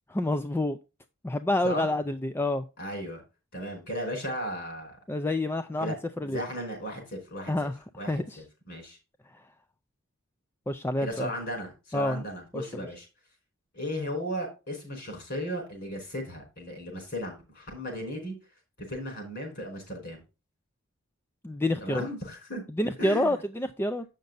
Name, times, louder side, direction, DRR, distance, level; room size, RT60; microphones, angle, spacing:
voice 1, 0.1-0.8 1.2-2.6 5.1-6.4 7.5-7.7 8.1-8.4 10.7-11.3 11.9-12.2 12.5-12.6 21.4-22.1 22.7-24.0, left 1 dB, 10° left, 0.4 m, -28 dB
voice 2, 2.8-3.2 3.5-5.0 5.8-5.9 6.2-7.5 8.0-9.0 11.0-13.1 13.7-18.3 18.9-20.2 21.8-22.6 23.0-23.3, equal, 50° left, 4.8 m, -36 dB
8.2 x 6.5 x 3.9 m
head